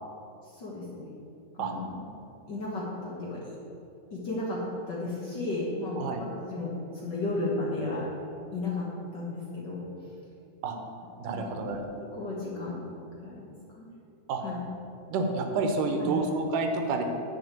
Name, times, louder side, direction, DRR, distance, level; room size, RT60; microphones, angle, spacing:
voice 1, 0.5-1.1 1.5-3.5 4.1-4.6 4.9-8.1 8.5-9.8 11.3-11.8 12.1-12.9 13.2-13.9 14.4-14.6 16.0-16.1, left 2 dB, 45° left, -5 dB, 1.6 m, -34 dB
voice 2, 11.2-11.9 14.3-14.4 15.1-17.0, right 3 dB, 80° right, 4 dB, 2.5 m, -29 dB
9.5 x 5.5 x 8.2 m, 2.7 s
omnidirectional pair, 3.6 m